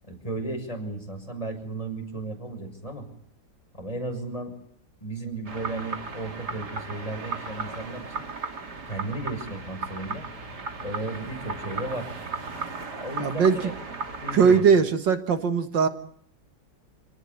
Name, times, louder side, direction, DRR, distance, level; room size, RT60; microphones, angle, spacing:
voice 1, 0.1-3.1 3.8-4.5 5.0-8.3 8.9-10.3 10.8-12.1 13.0-13.7 14.2-14.6, right 2 dB, 20° left, 3 dB, 6.7 m, -34 dB
sound 1, 5.5-14.6, right 4 dB, 60° right, 3.2 m, -36 dB
voice 2, 13.2-13.7 14.3-15.9, right 6 dB, 75° right, 8 dB, 2.2 m, -20 dB
27.5 x 19.0 x 9.7 m, 0.64 s
omnidirectional pair, 2.0 m